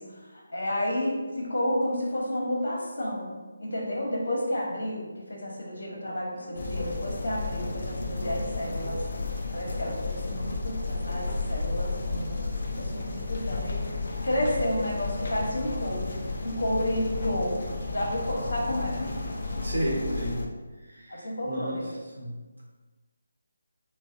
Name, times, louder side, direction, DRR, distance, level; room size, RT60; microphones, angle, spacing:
voice 1, 0.0-3.3 3.6-9.0 9.5-12.4 12.8-13.9 14.2-17.5 17.9-19.1 21.1-21.9, left 1 dB, 65° left, -2 dB, 1.0 m, -31 dB
sound 1, 6.4-9.0, left 2 dB, 5° right, 1.3 m, -51 dB
sound 2, 6.6-20.5, left 3 dB, 50° left, 0.4 m, -32 dB
voice 2, 19.6-20.4 20.8-21.8 22.2-22.4, right 1 dB, 75° right, -4 dB, 0.9 m, -32 dB
3.9 x 2.3 x 2.6 m, 1.3 s
figure-of-eight pair, 155°, 0 cm